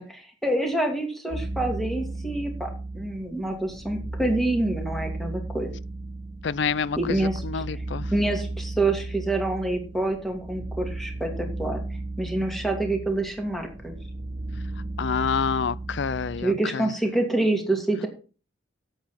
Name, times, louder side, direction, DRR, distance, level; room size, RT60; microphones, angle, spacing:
voice 1, 0.0-5.7 7.0-7.6 8.1-11.8 12.2-13.9 16.4-18.1, right 2 dB, ahead, 2.5 m, -27 dB
sound 1, 1.3-16.5, right 2 dB, 40° right, 1.4 m, -35 dB
voice 2, 6.4-7.2 7.4-8.1 15.0-16.9, left 6 dB, 65° left, 0.5 m, -27 dB
8.4 x 8.0 x 5.8 m
head